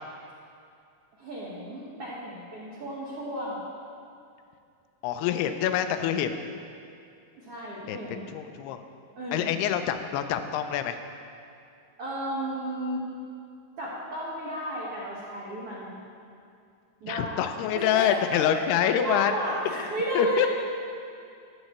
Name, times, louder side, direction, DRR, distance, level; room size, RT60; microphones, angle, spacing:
voice 1, 1.2-3.6 7.4-8.2 9.2-9.6 12.0-13.0 13.8-15.9 17.0-17.4 17.7-18.6 18.9-20.5, right 1 dB, 75° right, -7 dB, 1.3 m, -33 dB
voice 2, 5.0-6.3 7.9-8.0 8.3-8.8 9.3-11.0 17.1-19.3 20.2-20.5, left 10 dB, 90° left, 8 dB, 2.6 m, -26 dB
13.0 x 8.1 x 3.1 m, 2.5 s
omnidirectional pair, 4.5 m